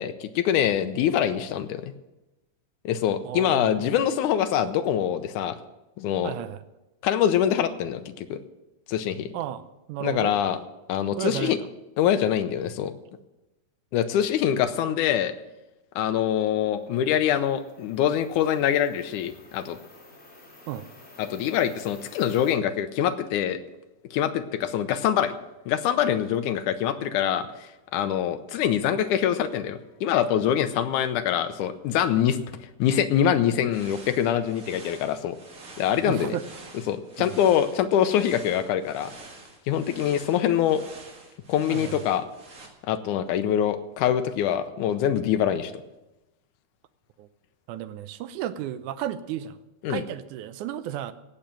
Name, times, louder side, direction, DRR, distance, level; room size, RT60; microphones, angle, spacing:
voice 1, 0.0-1.9 2.9-5.6 6.0-6.3 7.0-8.4 8.9-9.3 10.0-10.6 10.9-11.6 12.0-12.9 13.9-15.3 16.0-19.8 21.2-23.6 24.1-25.3 25.7-32.4 32.8-35.4 35.8-36.4 36.9-39.1 39.7-40.8 41.5-42.3 42.9-45.7 49.8-50.0, left 10 dB, 75° left, 10 dB, 2.0 m, -24 dB
voice 2, 3.2-3.9 6.2-6.6 9.3-10.4 11.2-11.7 20.7-20.9 36.0-36.4 37.2-37.3 41.7-42.0 47.2-47.3 47.7-49.6 49.9-51.1, right 11 dB, 75° right, 12 dB, 1.9 m, -33 dB
sound 1, 16.6-22.5, left 2 dB, 20° left, 2.6 m, -52 dB
sound 2, 33.7-42.7, right 3 dB, 35° right, 1.5 m, -47 dB
17.5 x 7.0 x 7.6 m, 1.0 s
omnidirectional pair, 4.1 m